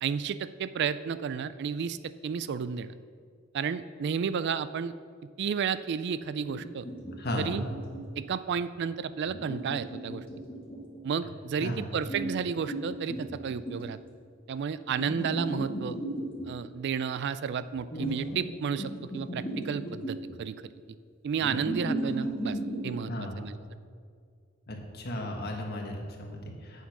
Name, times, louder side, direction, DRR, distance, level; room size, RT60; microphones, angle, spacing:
voice 1, 0.0-2.0 2.2-2.9 3.5-4.9 5.4-6.8 7.4-7.6 8.2-10.2 11.0-14.0 14.5-16.0 16.5-20.5 21.2-22.6 22.8-23.6, right 6 dB, 55° right, 15 dB, 0.3 m, -32 dB
sound 1, 6.4-8.2 9.3-11.0 12.0-13.9 15.0-16.5 17.9-18.5 18.8-20.3 21.4-23.0, right 1 dB, 25° left, 1.8 m, -35 dB
voice 2, 7.2-7.6 11.6-11.8 23.1-23.4 24.7-26.9, left 1 dB, 50° left, 1 dB, 1.6 m, -35 dB
8.4 x 7.7 x 6.0 m, 2.2 s
head